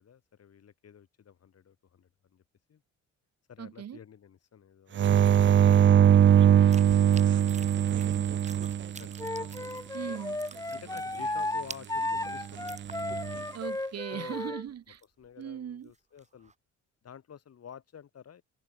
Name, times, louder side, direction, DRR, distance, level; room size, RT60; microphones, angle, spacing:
voice 1, 0.0-2.4 2.7-2.8 3.5-9.2 10.7-12.8 14.1-14.6 15.2-16.5 17.0-18.4, left 8 dB, 55° left, 5.8 m, -51 dB
voice 2, 3.6-4.0 9.9-10.4 13.5-15.0 15.4-15.9, right 9 dB, 55° right, 1.8 m, -39 dB
sound 1, 5.0-9.6 12.9-13.4, right 9 dB, 40° right, 0.6 m, -21 dB
sound 2, 5.7-10.1 10.3-13.4 13.7-13.8 14.1-15.3 15.7-16.5, right 4 dB, 25° right, 1.9 m, -48 dB
Wind instrument woodwind instrument, 9.2-14.6, left 2 dB, 10° left, 2.0 m, -34 dB
cardioid pair, 90°, 30 cm